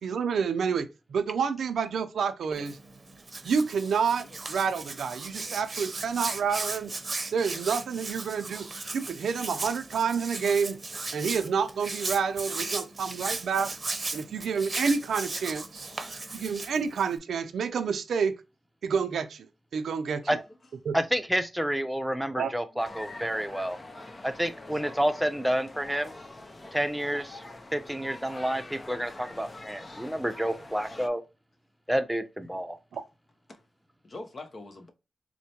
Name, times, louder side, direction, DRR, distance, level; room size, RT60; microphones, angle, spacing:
voice 1, 0.0-2.8 3.4-6.9 7.3-8.7 8.9-10.8 11.1-13.7 14.1-15.9 16.3-18.4 18.8-19.5 19.7-20.2 20.8-21.0 22.4-22.5 32.9-33.0, right 6 dB, 85° right, 0.4 m, -28 dB
Hands, 2.5-17.2, right 3 dB, 40° right, 0.7 m, -37 dB
voice 2, 12.5-12.9 13.2-13.4 14.4-14.6 15.9-16.5 20.2-20.3 22.4-22.6 23.2-25.3 26.5-26.8 29.5-29.6 33.5-33.6 34.0-34.9, left 2 dB, 55° left, 0.9 m, -49 dB
voice 3, 20.9-23.8 24.2-26.1 26.7-27.4 27.7-31.2 31.9-32.8, equal, 5° right, 0.7 m, -29 dB
sound 1, 22.8-31.1, left 2 dB, 35° left, 0.6 m, -45 dB
4.4 x 2.1 x 2.8 m
cardioid pair, 45°, 0 cm